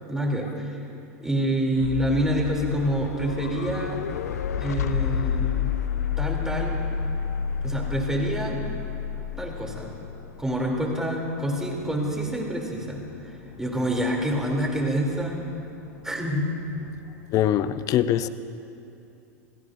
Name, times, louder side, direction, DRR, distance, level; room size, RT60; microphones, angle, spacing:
voice 1, 0.1-0.8 1.2-4.1 4.6-5.7 6.2-6.8 7.6-8.7 9.4-9.9 10.4-15.5 16.0-16.5, right 1 dB, 5° right, -1 dB, 3.2 m, -27 dB
sound 1, 1.8-17.7, left 8 dB, 85° left, 0.6 m, -32 dB
voice 2, 17.3-18.3, left 11 dB, 45° left, 13 dB, 0.6 m, -22 dB
28.0 x 17.5 x 2.7 m, 2.7 s
hypercardioid pair, 105°, 8 cm